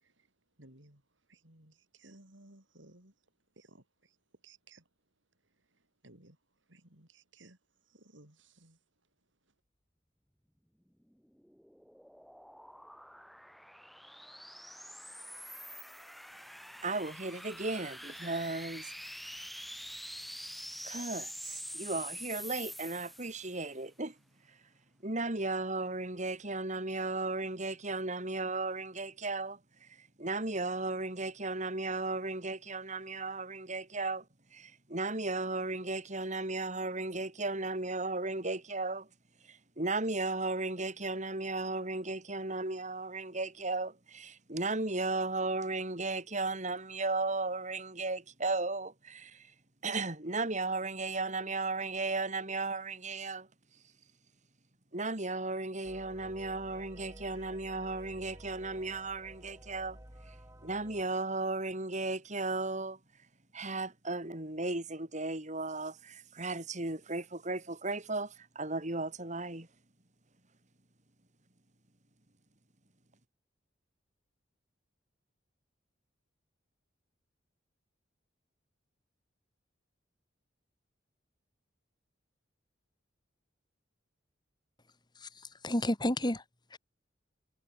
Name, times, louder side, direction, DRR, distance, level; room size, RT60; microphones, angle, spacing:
voice 1, 0.6-1.0 1.3-3.1 3.6-3.8 4.4-4.8 6.0-6.4 6.7-7.6 7.9-8.8, right 2 dB, 80° right, 5.5 m, -58 dB
sound 1, 11.0-23.7, equal, ahead, 5.4 m, -46 dB
voice 2, 16.8-18.9 20.8-24.1 25.0-29.9 30.2-34.2 34.5-39.1 39.5-49.5 49.8-53.5 54.9-60.0 60.6-63.0 63.5-69.7, right 3 dB, 40° right, 3.9 m, -35 dB
sound 2, 55.8-61.0, right 1 dB, 15° right, 2.7 m, -52 dB
voice 3, 85.2-86.4 86.7-86.8, left 1 dB, 25° left, 3.2 m, -31 dB
head